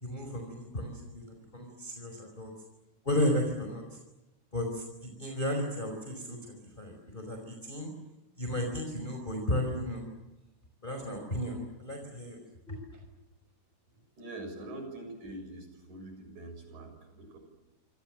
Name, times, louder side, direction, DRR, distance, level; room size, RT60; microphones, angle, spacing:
voice 1, 0.0-2.5 3.0-3.8 4.5-7.9 8.4-10.0 10.8-12.4 12.7-12.8, left 1 dB, 15° left, 2 dB, 4.8 m, -34 dB
voice 2, 14.2-17.4, right 2 dB, 80° right, 6 dB, 8.6 m, -44 dB
29.0 x 26.0 x 7.5 m, 1.0 s
omnidirectional pair, 3.4 m